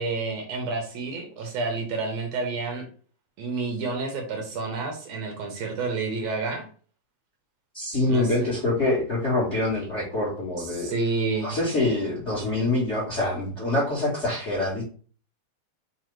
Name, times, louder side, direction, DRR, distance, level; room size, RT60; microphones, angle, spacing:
voice 1, 0.0-2.9 3.4-6.7 8.1-8.5 10.6-11.6, right 3 dB, 70° right, 3 dB, 1.8 m, -29 dB
voice 2, 7.7-10.9 11.4-14.8, left 2 dB, 35° left, -6 dB, 1.2 m, -25 dB
4.9 x 2.4 x 4.5 m, 0.42 s
omnidirectional pair, 3.4 m